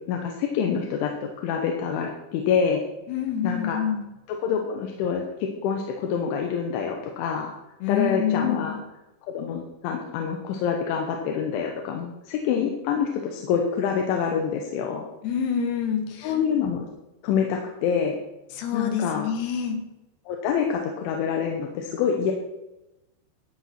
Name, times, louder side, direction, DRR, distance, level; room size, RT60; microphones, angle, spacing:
voice 1, 0.1-2.8 3.4-3.8 4.3-7.5 7.9-8.8 9.3-15.0 16.2-16.9 17.2-18.2 18.7-19.3 20.3-22.3, left 7 dB, 85° left, 2 dB, 3.5 m, -26 dB
voice 2, 3.1-4.0 7.8-8.8 15.2-16.3 18.5-19.8, left 7 dB, 70° left, 6 dB, 3.1 m, -27 dB
12.5 x 7.3 x 5.9 m, 0.96 s
omnidirectional pair, 5.3 m